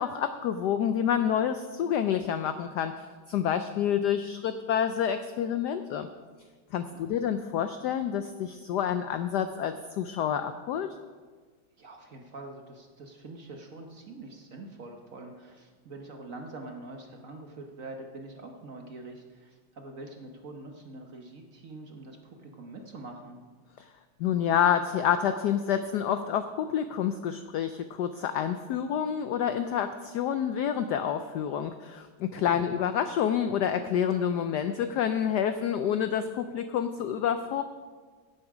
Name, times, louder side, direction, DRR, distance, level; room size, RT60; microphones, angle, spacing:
voice 1, 0.0-6.1 6.7-10.9 23.8-23.9 24.2-37.6, left 9 dB, 85° left, 9 dB, 0.9 m, -28 dB
voice 2, 6.9-7.2 11.8-23.4 32.3-32.7, right 2 dB, 50° right, 3 dB, 1.1 m, -45 dB
16.0 x 7.2 x 4.9 m, 1.5 s
omnidirectional pair, 2.3 m